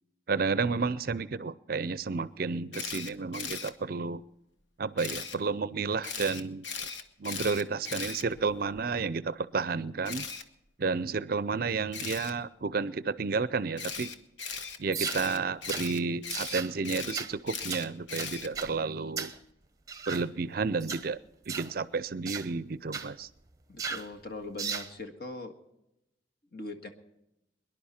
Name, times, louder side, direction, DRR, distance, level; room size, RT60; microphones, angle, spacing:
voice 1, 0.3-4.2 4.8-6.7 7.2-10.3 10.8-14.1 14.8-19.3 20.1-21.2 21.5-23.3, right 4 dB, 50° right, 17 dB, 0.5 m, -31 dB
Camera, 2.7-3.7 5.0-5.4 6.0-8.8 10.0-10.4 11.9-12.3 13.8-18.7, left 5 dB, 70° left, 1.2 m, -38 dB
sound 1, 14.9-15.2 15.7-15.9 16.3-16.7 17.1-17.3 17.7-17.9 18.2-18.7 19.2-19.4 19.9-20.2 20.8-21.0 21.5-21.7 22.3-22.5 22.9-23.1 23.8-24.1 24.6-24.9, right 6 dB, 20° right, 0.8 m, -36 dB
voice 2, 23.7-25.5 26.5-26.9, left 2 dB, 55° left, 4 dB, 1.8 m, -40 dB
23.5 x 11.0 x 4.3 m, 0.88 s
head